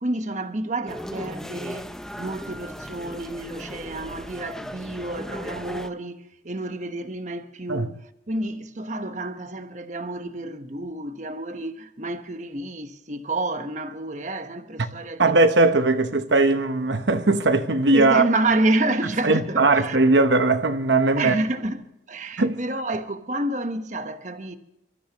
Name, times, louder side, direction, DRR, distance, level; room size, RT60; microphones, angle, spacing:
voice 1, 0.0-15.3 17.9-20.0 21.2-24.6, right 2 dB, 40° right, 1.2 m, -29 dB
sound 1, 0.9-5.9, equal, 5° left, 0.6 m, -37 dB
voice 2, 15.2-18.2 19.2-21.3 22.4-22.6, right 3 dB, 70° right, 1.0 m, -19 dB
29.0 x 14.0 x 3.0 m
head